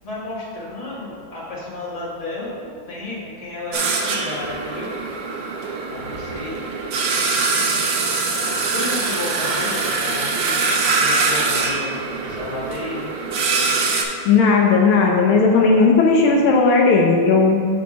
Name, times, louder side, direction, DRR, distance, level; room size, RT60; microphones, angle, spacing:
voice 1, 0.0-4.9 5.9-6.8 7.3-7.8 8.7-13.1, left 2 dB, 20° left, -7 dB, 1.5 m, -32 dB
sound 1, 3.7-14.0, right 4 dB, 65° right, 1.4 m, -23 dB
voice 2, 14.2-17.7, left 4 dB, 75° left, 0 dB, 1.5 m, -15 dB
5.7 x 4.3 x 6.1 m, 2.2 s
omnidirectional pair, 2.4 m